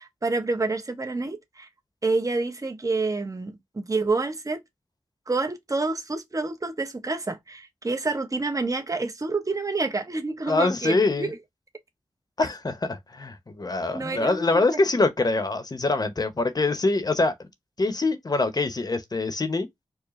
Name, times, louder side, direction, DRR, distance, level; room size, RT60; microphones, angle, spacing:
voice 1, 0.0-1.7 2.0-4.6 5.3-11.4 13.9-14.8, right 3 dB, 35° right, 0.9 m, -28 dB
voice 2, 10.5-11.3 12.4-17.3 17.8-19.7, left 3 dB, 40° left, 0.9 m, -24 dB
4.7 x 2.2 x 3.1 m
cardioid pair, 55°, 10 cm